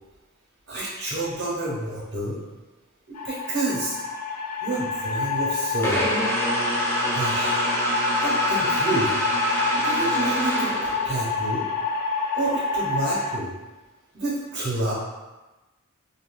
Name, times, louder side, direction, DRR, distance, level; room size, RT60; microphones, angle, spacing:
voice 1, 0.7-2.4 3.1-4.0 4.6-6.0 7.1-7.6 8.2-9.1 9.7-11.7 12.3-13.5 14.1-14.9, right 2 dB, 50° right, -6 dB, 1.2 m, -29 dB
sound 1, 3.2-13.4, left 4 dB, 90° left, 0.3 m, -27 dB
sound 2, 5.8-11.4, right 1 dB, 10° left, 0.4 m, -26 dB
2.9 x 2.7 x 2.2 m, 1.1 s
head